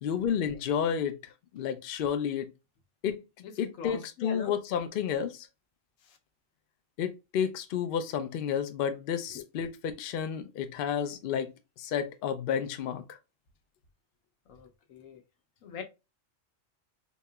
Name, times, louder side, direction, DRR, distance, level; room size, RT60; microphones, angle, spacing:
voice 1, 0.0-2.5 3.0-3.2 3.6-5.5 7.0-11.5 11.8-13.2, left 8 dB, 65° left, 0.6 m, -31 dB
voice 2, 3.4-4.5 14.5-15.2 15.6-15.8, left 5 dB, 85° left, 1.1 m, -42 dB
4.0 x 2.8 x 2.3 m
omnidirectional pair, 1.4 m